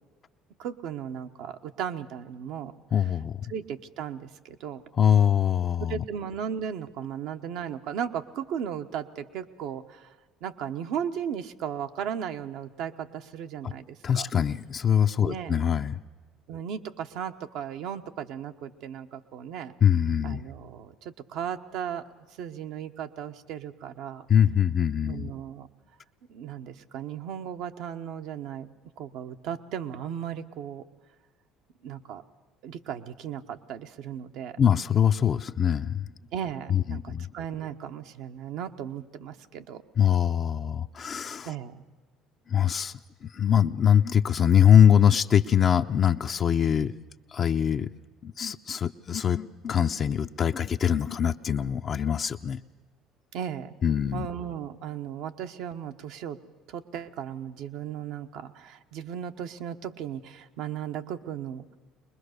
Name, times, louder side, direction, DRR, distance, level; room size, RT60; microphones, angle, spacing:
voice 1, 0.6-2.7 3.5-4.8 5.8-10.1 10.4-14.3 15.2-15.6 16.5-19.7 20.2-22.0 22.4-24.3 25.1-25.7 26.3-28.7 29.0-30.8 31.8-32.2 32.6-34.6 36.3-39.8 41.4-41.8 53.3-53.7 54.1-56.4 56.7-61.7, right 8 dB, 70° right, 7 dB, 1.0 m, -36 dB
voice 2, 2.9-3.4 5.0-6.0 13.6-13.7 14.0-16.0 19.8-20.4 24.3-25.3 34.6-36.1 36.7-37.3 40.0-41.5 42.5-46.9 47.3-47.9 48.2-52.6 53.8-54.3, left 9 dB, 45° left, 6 dB, 0.6 m, -23 dB
22.5 x 20.5 x 6.6 m, 1.4 s
supercardioid pair, 85°, 0 cm